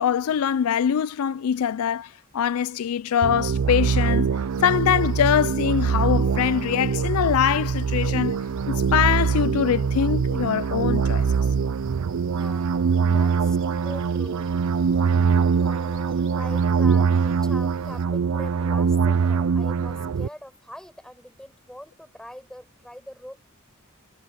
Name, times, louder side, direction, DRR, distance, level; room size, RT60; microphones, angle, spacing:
voice 1, 0.0-4.3 4.6-11.3, left 8 dB, 80° left, 0.4 m, -23 dB
sound 1, 3.2-20.3, right 6 dB, 80° right, 0.5 m, -23 dB
sound 2, 4.5-18.1, right 4 dB, 60° right, 4.8 m, -52 dB
voice 2, 12.3-12.7 13.1-13.6 13.8-14.5 15.6-23.5, equal, 5° left, 5.9 m, -42 dB
head